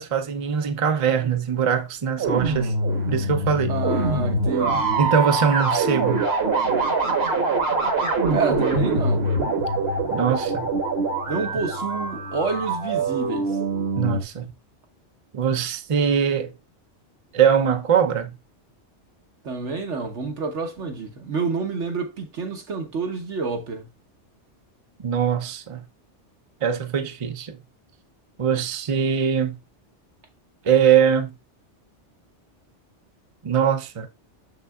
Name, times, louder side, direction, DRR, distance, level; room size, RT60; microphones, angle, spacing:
voice 1, 0.0-2.7 3.1-3.7 5.0-6.3 10.1-10.7 14.0-14.5 15.3-16.5 17.3-18.4 25.0-25.8 26.6-27.6 28.4-29.6 30.6-31.3 33.4-34.1, right 7 dB, 35° right, 0.6 m, -22 dB
sound 1, 2.2-14.2, right 3 dB, 60° right, 1.4 m, -24 dB
voice 2, 3.7-5.0 8.3-9.3 11.3-13.6 19.4-23.9, right 4 dB, 75° right, 1.5 m, -28 dB
6.7 x 6.6 x 2.4 m
omnidirectional pair, 1.2 m